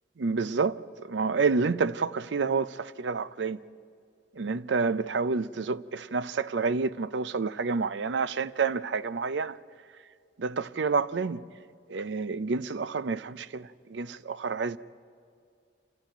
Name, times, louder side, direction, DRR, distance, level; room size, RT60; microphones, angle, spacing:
voice 1, 0.2-3.6 4.4-9.6 10.4-11.4 11.9-14.8, right 4 dB, 90° right, 0.5 m, -29 dB
27.5 x 13.0 x 9.0 m
head